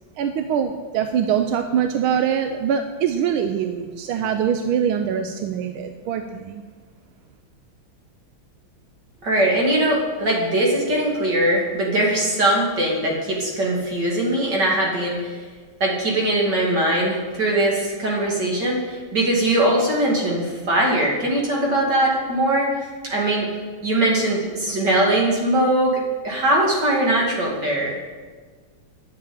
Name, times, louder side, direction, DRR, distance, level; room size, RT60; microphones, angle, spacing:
voice 1, 0.2-6.7, right 8 dB, 85° right, 7 dB, 1.5 m, -23 dB
voice 2, 9.2-15.4 15.8-23.5 23.8-27.9, right 1 dB, 55° right, -2 dB, 3.2 m, -21 dB
10.0 x 7.2 x 8.8 m, 1.5 s
omnidirectional pair, 2.3 m